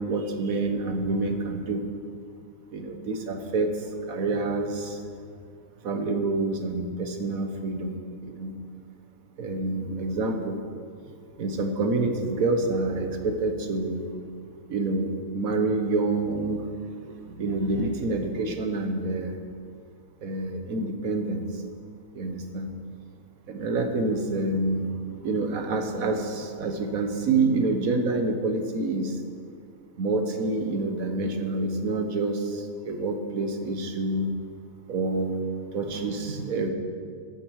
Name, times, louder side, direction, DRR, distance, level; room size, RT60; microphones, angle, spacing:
voice 1, 0.0-1.9 2.7-3.7 4.1-5.0 5.8-8.0 8.2-8.5 9.4-10.6 11.4-14.0 14.7-16.7 17.1-19.3 20.2-21.4 22.2-22.7 23.5-24.9 25.2-29.1 30.0-34.3 34.9-35.4 35.7-36.7, right 3 dB, 70° right, 5 dB, 1.5 m, -27 dB
14.5 x 9.8 x 4.7 m, 2.2 s
omnidirectional pair, 1.6 m